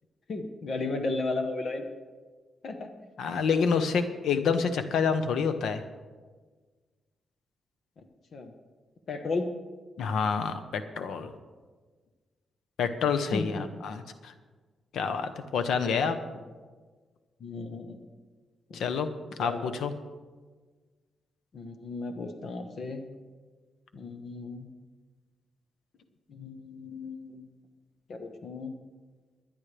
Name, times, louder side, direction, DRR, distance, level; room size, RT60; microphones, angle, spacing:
voice 1, 0.3-1.8 2.6-2.9 8.3-8.5 9.1-9.5 13.3-13.7 17.4-18.0 18.7-18.8 19.4-19.7 21.5-23.0 23.9-24.7 26.3-27.4 28.1-28.7, left 3 dB, 55° left, 6 dB, 1.1 m, -34 dB
voice 2, 3.2-5.8 10.0-11.3 12.8-14.3 14.9-16.2 18.7-19.1 19.4-19.9, left 6 dB, 90° left, 9 dB, 1.0 m, -28 dB
22.5 x 10.5 x 3.4 m, 1.4 s
wide cardioid pair, 145°, 0 cm